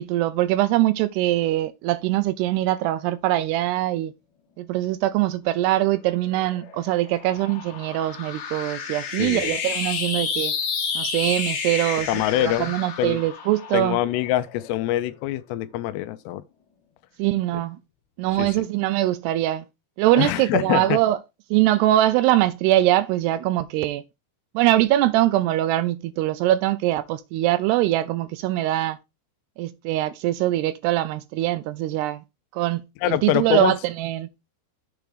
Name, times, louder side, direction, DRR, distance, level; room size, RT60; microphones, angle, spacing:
voice 1, 0.0-4.1 4.6-10.5 11.0-12.1 12.4-14.0 17.2-17.8 18.2-19.7 20.0-21.2 21.5-24.0 24.5-29.0 29.6-32.2 32.5-34.3, right 15 dB, 85° right, 2.6 m, -22 dB
sound 1, 6.3-15.0, left 6 dB, 55° left, 2.7 m, -31 dB
voice 2, 9.2-9.6 12.1-12.7 13.0-13.2 13.7-16.4 18.4-18.6 20.1-21.0 33.0-33.8, left 13 dB, 85° left, 2.8 m, -24 dB
7.8 x 3.5 x 6.2 m
omnidirectional pair, 4.8 m